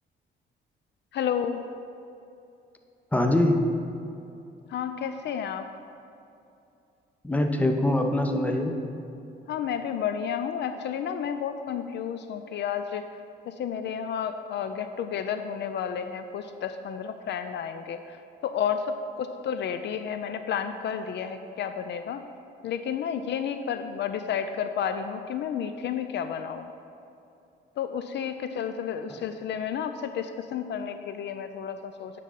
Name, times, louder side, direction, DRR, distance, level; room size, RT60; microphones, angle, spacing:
voice 1, 1.1-1.6 4.7-5.7 9.5-13.0 13.5-18.2 18.4-22.2 22.6-26.7 27.8-32.2, left 8 dB, 60° left, 9 dB, 0.4 m, -31 dB
voice 2, 3.1-3.6 7.2-8.8, left 1 dB, 5° left, 4 dB, 0.7 m, -23 dB
10.0 x 3.8 x 5.6 m, 2.7 s
cardioid pair, 90°, 20 cm